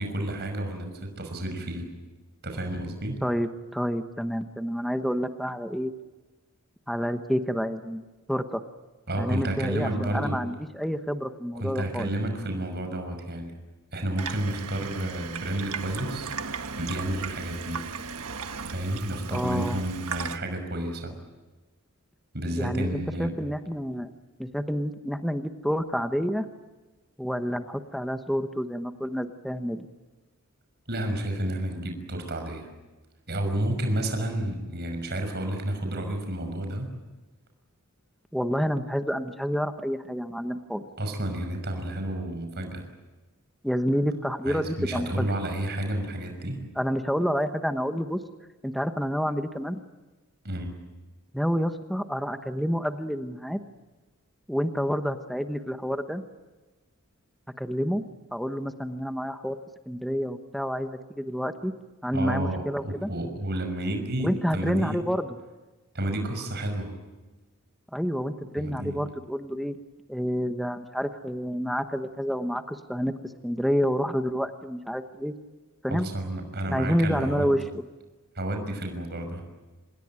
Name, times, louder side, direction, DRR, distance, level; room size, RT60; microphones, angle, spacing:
voice 1, 0.0-1.9 2.4-3.2 9.1-10.4 11.5-13.5 13.9-16.3 16.8-17.8 18.6-21.1 22.3-23.4 30.9-32.7 33.3-36.9 41.0-42.9 44.5-46.6 50.4-50.8 62.1-65.0 65.9-66.9 68.6-69.0 75.9-77.5 78.4-79.4, right 1 dB, 50° right, 5 dB, 5.9 m, -31 dB
voice 2, 3.2-5.9 6.9-8.6 9.2-12.1 19.3-19.8 22.5-24.1 24.4-26.5 27.2-29.9 38.3-40.9 43.6-45.3 46.8-48.2 48.6-49.8 51.3-53.6 54.5-56.2 57.6-58.0 58.3-59.6 59.9-61.7 62.0-63.1 64.2-65.4 67.9-69.8 70.1-73.1 73.4-75.3 75.8-76.1 76.7-77.6, equal, ahead, 7 dB, 1.1 m, -29 dB
Water tap faucet / Sink (filling or washing), 14.2-20.4, right 5 dB, 80° right, 1.5 m, -36 dB
27.0 x 21.0 x 9.0 m, 1.2 s
head